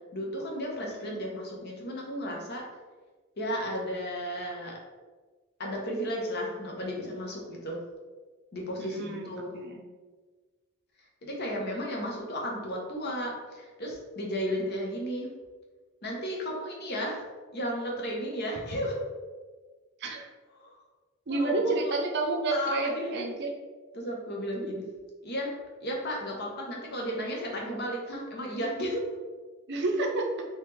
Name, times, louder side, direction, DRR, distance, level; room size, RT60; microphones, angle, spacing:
voice 1, 0.1-2.6 3.4-4.8 5.6-7.8 8.5-9.5 11.2-15.3 16.0-17.2 17.5-19.0 20.6-20.7 21.3-21.9 22.5-23.2 23.9-24.8 25.2-25.5 25.8-29.0 29.8-29.9, equal, 50° left, -1 dB, 0.9 m, -34 dB
voice 2, 0.9-1.2 8.8-9.8 20.0-20.2 21.3-23.5 29.7-30.5, right 2 dB, 50° right, 2 dB, 0.6 m, -30 dB
4.0 x 2.9 x 3.2 m, 1.4 s
head